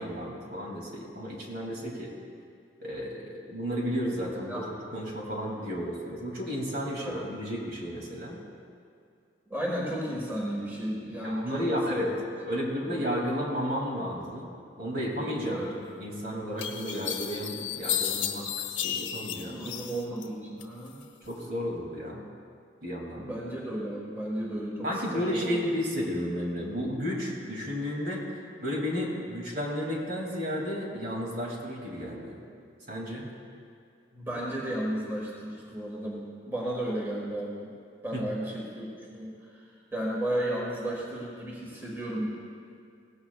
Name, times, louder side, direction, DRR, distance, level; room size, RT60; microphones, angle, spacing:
voice 1, 0.0-2.1 2.8-8.4 11.2-12.2 12.4-14.5 14.8-15.7 16.0-19.6 21.3-22.2 22.8-23.3 24.8-28.2 28.6-32.3 32.9-33.3 38.1-38.2, equal, 55° right, -2 dB, 2.6 m, -32 dB
voice 2, 9.5-12.0 12.8-13.1 15.5-15.7 19.4-21.0 23.2-25.6 34.1-37.7 38.0-42.3, right 1 dB, 10° right, -4 dB, 1.7 m, -34 dB
sound 1, 15.9-16.0 16.6-20.3 20.6-21.4, left 9 dB, 75° left, 0.9 m, -33 dB
18.0 x 16.0 x 2.4 m, 2.4 s
head